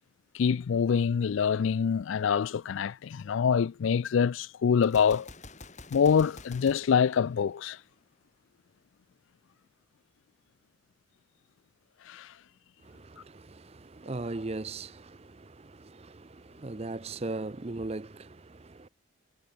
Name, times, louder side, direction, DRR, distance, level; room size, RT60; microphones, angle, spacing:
voice 1, 0.3-5.3 5.9-7.8 12.1-12.3, left 7 dB, 70° left, 0.4 m, -25 dB
Gunshot gunfire, 4.8-7.9, left 3 dB, 35° left, 3.4 m, -48 dB
voice 2, 12.8-18.9, right 2 dB, 30° right, 0.6 m, -39 dB
head